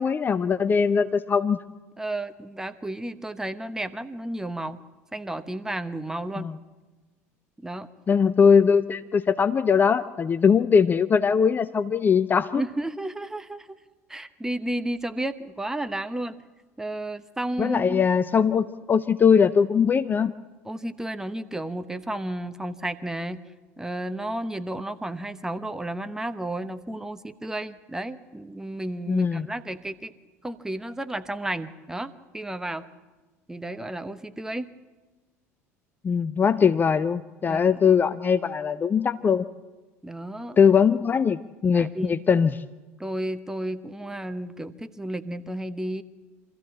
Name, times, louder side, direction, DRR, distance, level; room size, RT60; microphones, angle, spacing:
voice 1, 0.0-1.6 6.4-6.6 8.1-12.6 17.6-20.3 29.1-29.5 36.0-39.5 40.6-42.6, left 6 dB, 25° left, 12 dB, 0.5 m, -21 dB
voice 2, 2.0-4.8 5.1-6.5 7.6-7.9 12.6-13.8 14.1-16.4 16.8-18.0 20.6-23.4 23.8-30.1 30.4-32.9 33.5-34.7 37.5-38.0 40.0-40.6 41.7-42.2 43.0-46.0, right 1 dB, 5° right, 11 dB, 1.0 m, -32 dB
25.0 x 14.0 x 7.4 m, 1.2 s
figure-of-eight pair, 65°, 8 cm